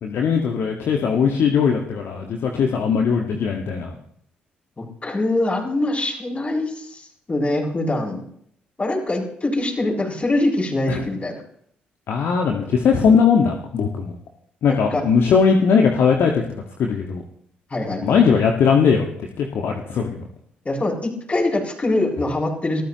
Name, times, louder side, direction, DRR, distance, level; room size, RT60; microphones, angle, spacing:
voice 1, 0.0-3.9 10.9-11.0 12.1-14.1 14.6-16.4 16.8-17.2 18.0-19.1 19.4-20.3, left 6 dB, 55° left, 2 dB, 1.9 m, -19 dB
voice 2, 4.8-8.2 8.8-11.4 14.7-15.0 17.7-18.2 20.6-22.8, left 2 dB, 30° left, -2 dB, 7.7 m, -23 dB
27.5 x 14.5 x 3.2 m, 0.66 s
figure-of-eight pair, 40°, 5 cm